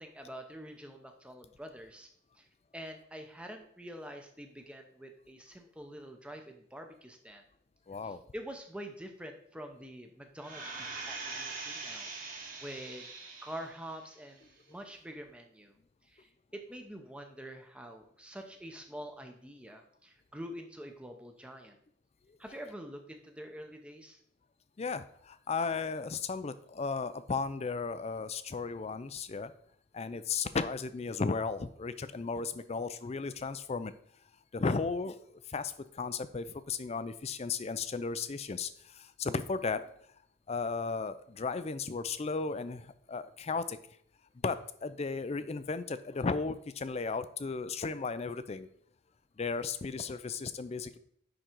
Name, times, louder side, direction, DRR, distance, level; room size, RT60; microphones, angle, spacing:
voice 1, 0.0-2.1 2.4-2.5 2.7-7.4 8.0-13.1 13.4-15.7 16.0-21.8 22.4-24.2, equal, 5° right, 4 dB, 0.7 m, -46 dB
voice 2, 7.9-8.2 24.8-29.5 29.9-33.9 34.5-35.2 35.5-39.8 40.5-43.8 44.4-48.7 49.4-51.0, left 4 dB, 30° left, 13 dB, 0.4 m, -35 dB
sound 1, 10.4-13.8 14.3-14.4, right 4 dB, 40° right, 1.6 m, -42 dB
10.0 x 3.8 x 4.5 m, 0.66 s
head